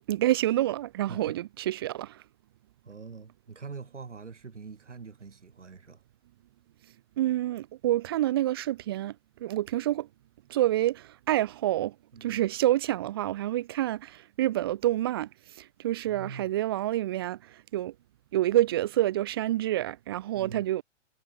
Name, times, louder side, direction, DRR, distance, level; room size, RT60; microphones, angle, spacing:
voice 1, 0.0-2.2 7.2-10.1 10.5-12.0 12.2-17.9 18.3-20.8, right 14 dB, 20° right, 0.4 m, -28 dB
voice 2, 2.8-6.0 12.1-12.4 16.1-16.5 20.3-20.6, right 5 dB, 70° right, 5.1 m, -44 dB
figure-of-eight pair, 115°, 37 cm